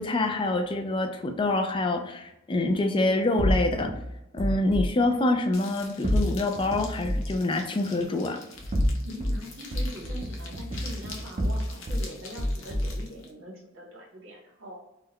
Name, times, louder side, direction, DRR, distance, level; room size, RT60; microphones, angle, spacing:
voice 1, 0.0-3.9 4.3-8.4, left 2 dB, 25° left, 5 dB, 0.4 m, -26 dB
sound 1, 3.4-4.9 6.0-7.4 8.5-9.4 9.7-12.1 12.4-13.0, equal, 35° right, 0.5 m, -28 dB
sound 2, 5.5-13.3, left 4 dB, 70° left, 0.7 m, -46 dB
voice 2, 9.0-14.8, equal, 85° right, -2 dB, 1.3 m, -42 dB
3.6 x 2.2 x 2.9 m, 0.88 s
head